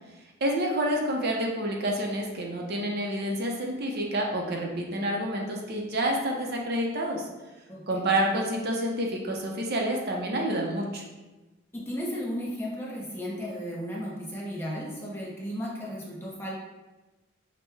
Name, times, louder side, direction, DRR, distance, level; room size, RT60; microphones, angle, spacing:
voice 1, 0.4-7.2 7.9-11.0, right 1 dB, 50° right, 0 dB, 0.6 m, -28 dB
voice 2, 11.7-16.5, equal, 10° left, -5 dB, 0.7 m, -34 dB
6.1 x 2.1 x 3.3 m, 1.1 s
head